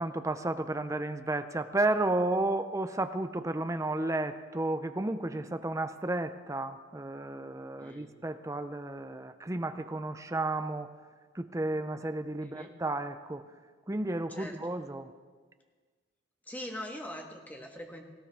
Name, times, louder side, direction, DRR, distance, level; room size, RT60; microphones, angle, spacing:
voice 1, 0.0-10.9 11.3-13.4 13.9-15.1, right 2 dB, 15° right, 10 dB, 0.5 m, -32 dB
voice 2, 7.8-8.1 12.4-12.7 14.3-14.6 16.5-18.0, equal, 10° left, 2 dB, 1.4 m, -42 dB
18.5 x 16.5 x 3.5 m, 1.5 s
head